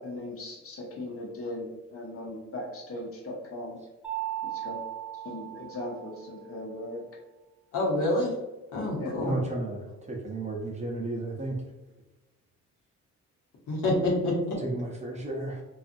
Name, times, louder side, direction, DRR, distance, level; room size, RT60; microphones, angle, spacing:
voice 1, 0.0-3.8 4.5-4.8 5.2-7.0 9.0-9.2, left 1 dB, 45° left, -2 dB, 0.9 m, -38 dB
Mallet percussion, 4.0-6.6, right 13 dB, 5° right, 1.0 m, -37 dB
voice 2, 7.7-8.3 8.7-9.4 13.7-14.6, left 1 dB, 80° left, -3 dB, 1.0 m, -27 dB
voice 3, 9.2-11.5 14.6-15.6, right 2 dB, 25° right, -1 dB, 0.6 m, -33 dB
2.7 x 2.4 x 2.5 m, 1.1 s
cardioid pair, 90°, 30 cm